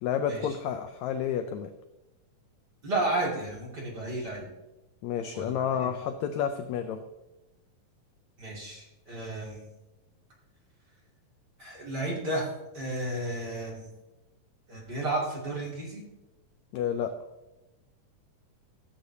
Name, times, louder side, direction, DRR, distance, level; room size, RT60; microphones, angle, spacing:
voice 1, 0.0-1.7 5.0-7.0 16.7-17.1, left 8 dB, 85° left, 8 dB, 1.6 m, -30 dB
voice 2, 2.8-4.5 5.3-5.9 8.4-9.7 11.6-13.9 14.7-16.0, right 2 dB, 35° right, -5 dB, 2.5 m, -33 dB
15.0 x 8.1 x 2.7 m, 1.0 s
omnidirectional pair, 3.8 m